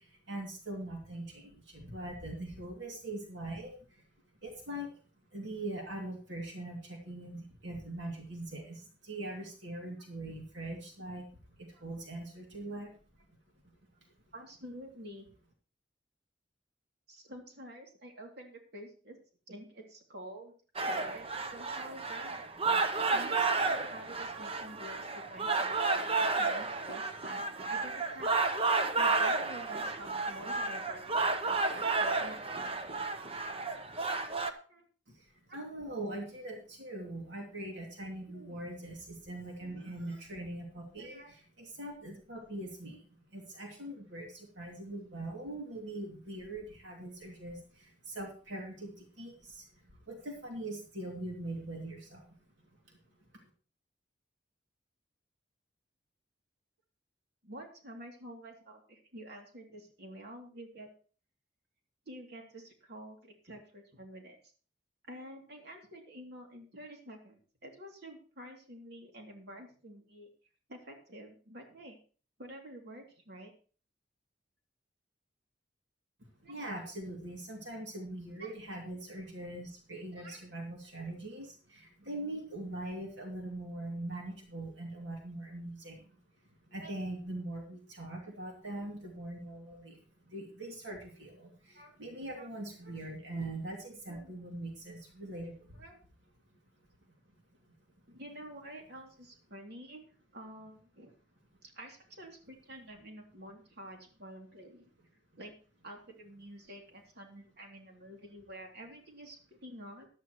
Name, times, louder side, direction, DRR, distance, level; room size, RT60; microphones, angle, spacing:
voice 1, 0.0-4.0 4.4-4.9 5.3-13.0 35.1-52.4 52.8-53.0 53.3-53.5 76.4-86.2 86.7-90.0 90.3-95.8 97.1-97.2 97.6-97.7, right 1 dB, 80° right, 0 dB, 2.6 m, -42 dB
voice 2, 14.3-15.3 17.1-19.2 19.5-20.6 20.9-22.5 23.1-27.4 27.7-28.3 29.0-32.6 34.7-34.8 35.5-35.6 38.3-38.6 39.6-39.8 41.0-41.3 57.4-60.9 62.1-64.5 65.1-70.3 70.7-72.0 72.4-73.5 76.4-76.7 78.3-78.5 80.1-80.4 86.8-86.9 91.7-91.9 92.3-92.5 94.1-94.3 95.7-96.0 98.1-100.0 100.3-101.1 101.6-104.9 105.4-105.5 105.8-110.1, right 1 dB, 65° right, 1 dB, 2.9 m, -49 dB
sound 1, 20.8-34.5, right 3 dB, 30° right, 1.0 m, -32 dB
14.5 x 11.5 x 3.1 m, 0.39 s
head